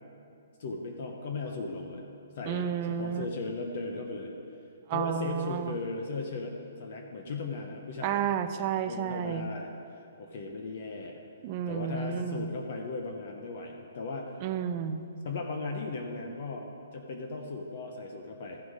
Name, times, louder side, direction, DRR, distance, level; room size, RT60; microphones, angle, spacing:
voice 1, 0.6-2.0 2.4-4.3 4.9-8.2 8.9-9.7 10.2-11.2 11.7-14.4 15.2-16.7 16.9-18.6, left 3 dB, 50° left, 2 dB, 0.9 m, -37 dB
voice 2, 2.4-3.3 4.9-5.8 8.0-9.5 11.4-12.5 14.4-15.1, right 8 dB, 30° right, 10 dB, 0.5 m, -31 dB
14.0 x 6.0 x 4.9 m, 2.4 s
hypercardioid pair, 165°, 0 cm